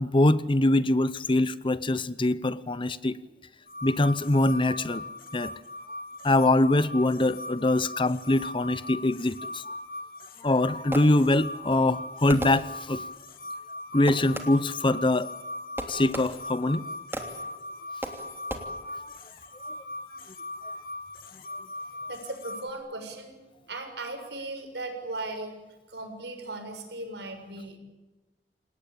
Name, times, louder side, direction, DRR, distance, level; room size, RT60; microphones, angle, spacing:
voice 1, 0.0-3.2 3.8-5.0 5.3-5.5 6.2-9.6 10.4-13.0 13.9-15.3 15.9-16.8, left 2 dB, 30° left, 0.8 m, -23 dB
sound 1, 3.7-22.7, left 2 dB, 55° left, 2.6 m, -40 dB
Fireworks, 10.4-11.6 12.3-13.2 14.1-14.8 15.8-16.6 17.1-17.6 18.0-18.6, right 1 dB, 15° right, 3.0 m, -37 dB
voice 2, 22.1-23.4 23.7-25.5 25.9-27.8, right 2 dB, 70° right, 7.0 m, -37 dB
29.5 x 18.5 x 8.7 m
head